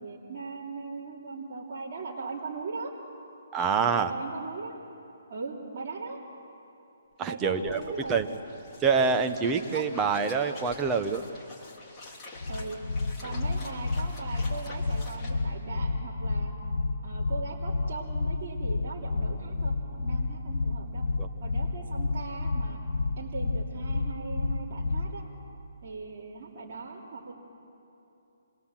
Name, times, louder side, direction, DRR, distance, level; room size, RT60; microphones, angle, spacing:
voice 1, 0.0-2.9 3.8-4.8 5.3-6.2 7.2-8.2 9.7-10.0 12.5-12.8 13.2-16.5 17.0-21.0 21.4-22.8 23.2-25.2 25.8-27.3, right 4 dB, 45° right, -5 dB, 3.1 m, -39 dB
voice 2, 3.5-4.1 7.2-7.8 8.1-8.3 8.8-11.2 21.2-21.3, right 5 dB, 15° right, 6 dB, 0.9 m, -26 dB
sound 1, 7.1-7.2 7.4-15.3, left 2 dB, 15° left, 3.2 m, -47 dB
sound 2, 12.4-25.2, left 3 dB, 70° left, 2.1 m, -30 dB
27.0 x 21.5 x 7.4 m, 2.8 s
hypercardioid pair, 165°, 0 cm